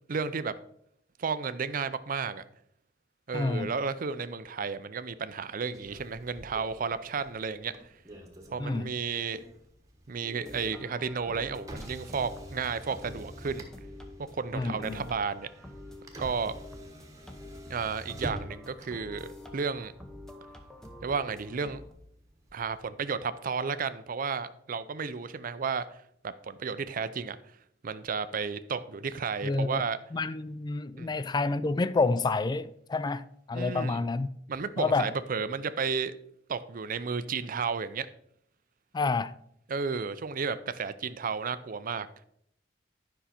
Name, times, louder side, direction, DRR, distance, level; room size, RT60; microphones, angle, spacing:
voice 1, 0.1-0.5 1.2-2.4 3.3-7.7 8.5-9.4 10.1-13.7 14.3-15.5 16.2-16.6 17.7-19.9 21.0-21.8 22.5-25.8 26.2-27.4 27.8-30.0 31.0-31.1 33.5-34.0 34.5-36.1 36.5-38.1 39.7-42.1, right 5 dB, 50° right, 0.5 m, -32 dB
voice 2, 3.3-3.7 8.6-8.9 14.5-15.0 29.4-29.8 30.1-34.3 34.8-35.1 38.9-39.3, left 3 dB, 25° left, 0.3 m, -29 dB
Motor vehicle (road), 5.7-22.9, equal, 20° right, 1.2 m, -48 dB
Sunrise Session, 10.2-21.9, left 1 dB, 5° left, 0.9 m, -47 dB
10.5 x 5.6 x 4.3 m
head